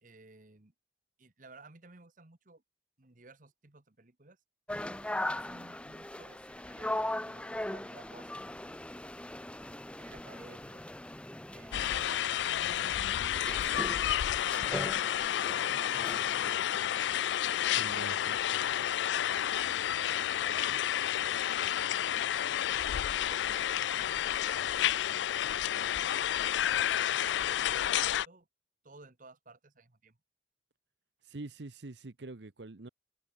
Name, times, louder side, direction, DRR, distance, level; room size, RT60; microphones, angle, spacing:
voice 1, 0.0-0.7 1.2-2.6 3.0-4.4 5.1-7.0 7.2-8.8 10.0-10.8 11.5-14.4 15.5-17.3 17.8-22.2 22.9-25.2 26.1-26.4 26.7-28.5 28.8-30.2, right 3 dB, 45° right, 1.4 m, -56 dB
sound 1, 4.7-16.5, left 1 dB, 5° left, 0.5 m, -40 dB
sound 2, 11.7-28.3, left 11 dB, 75° left, 0.3 m, -30 dB
voice 2, 17.7-18.4 31.2-32.9, right 2 dB, 70° right, 0.9 m, -44 dB
head